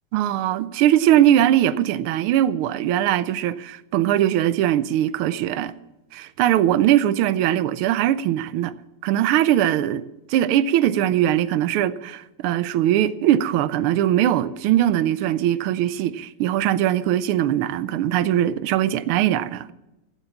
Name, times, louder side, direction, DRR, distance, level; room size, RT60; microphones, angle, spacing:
voice 1, 0.1-5.7 6.1-8.7 9.0-10.0 10.3-19.7, right 12 dB, 80° right, 1.5 m, -20 dB
16.0 x 8.7 x 7.1 m
omnidirectional pair, 2.4 m